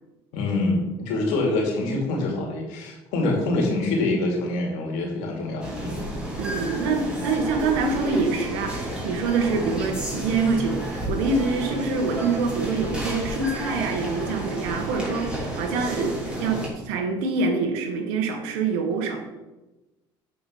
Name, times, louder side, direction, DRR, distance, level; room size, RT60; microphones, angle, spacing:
voice 1, 0.3-6.0, left 2 dB, 75° left, 0 dB, 2.6 m, -25 dB
sound 1, 5.6-16.7, right 1 dB, 10° right, 3.2 m, -31 dB
voice 2, 6.4-19.2, right 4 dB, 80° right, 4 dB, 1.6 m, -26 dB
8.0 x 5.0 x 5.6 m, 1.1 s
supercardioid pair, 90°, 12 cm